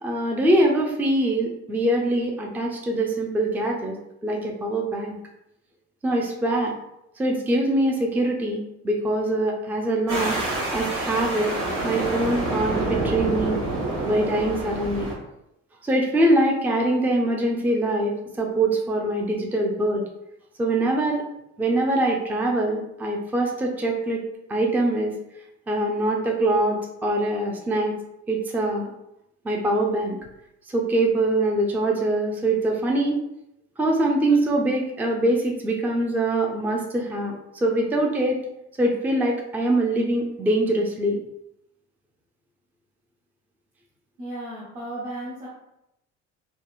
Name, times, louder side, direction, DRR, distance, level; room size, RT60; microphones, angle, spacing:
voice 1, 0.0-4.0 4.2-5.2 6.0-6.7 7.2-10.4 10.7-11.5 11.8-13.6 14.0-15.1 15.8-20.0 20.6-21.2 21.6-24.2 24.5-25.1 25.7-27.9 28.3-28.9 29.4-30.2 30.7-33.2 33.8-38.4 38.8-41.2, right 1 dB, 5° right, 0 dB, 0.4 m, -23 dB
sound 1, 10.1-15.1, right 2 dB, 60° right, 1.0 m, -27 dB
voice 2, 44.2-45.5, right 1 dB, 80° right, -7 dB, 0.7 m, -34 dB
2.8 x 2.1 x 2.3 m, 0.84 s
hypercardioid pair, 55°, 36 cm